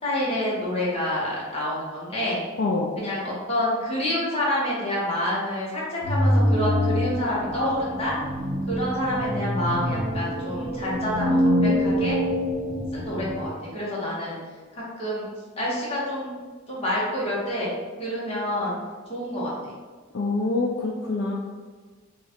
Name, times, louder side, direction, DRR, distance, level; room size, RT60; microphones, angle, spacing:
voice 1, 0.0-2.4 3.0-8.1 8.7-12.2 12.9-14.4 14.7-15.3 15.6-16.3 16.7-17.7 18.0-18.8 19.1-19.5, left 1 dB, 30° left, -7 dB, 1.2 m, -28 dB
voice 2, 2.6-2.9 20.1-21.3, left 3 dB, 60° left, -1 dB, 0.4 m, -25 dB
sound 1, 6.0-13.5, equal, 30° right, 1.2 m, -25 dB
3.0 x 2.4 x 4.2 m, 1.4 s
head